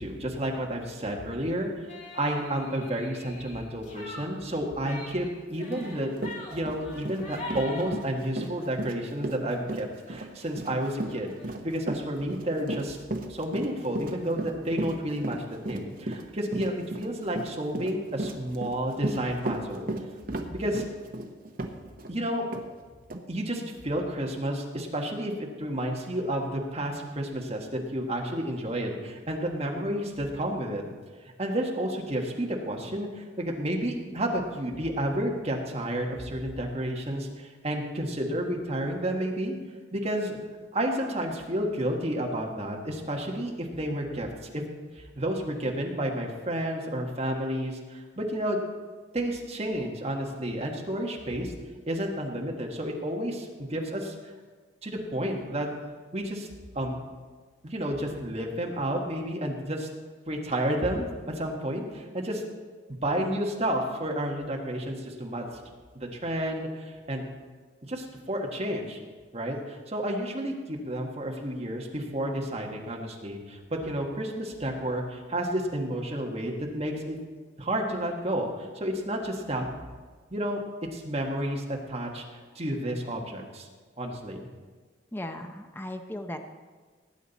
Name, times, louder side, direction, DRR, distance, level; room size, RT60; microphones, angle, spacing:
voice 1, 0.0-1.7 2.1-6.1 6.5-11.3 11.6-13.0 13.3-19.9 20.5-20.8 22.1-22.4 23.3-30.8 31.2-39.5 39.9-40.4 40.7-44.7 44.9-48.6 49.1-51.5 51.9-54.1 54.8-55.7 56.1-56.5 56.7-57.0 57.6-59.9 60.3-62.4 63.0-65.5 65.9-67.3 67.9-69.0 69.3-77.2 77.6-79.9 80.3-80.6 80.9-83.7 84.0-84.5, right 1 dB, 35° right, 0 dB, 1.6 m, -31 dB
sound 1, 1.9-8.7 9.1-9.5 9.7-9.8 10.0-11.5, left 2 dB, 40° left, 2.0 m, -44 dB
Run, 5.8-5.9 6.2-22.1 22.5-22.7 23.1-23.2, right 1 dB, 50° right, 1.0 m, -35 dB
voice 2, 85.1-86.4, left 1 dB, 10° left, 5 dB, 0.6 m, -36 dB
18.5 x 8.6 x 4.1 m, 1.4 s
head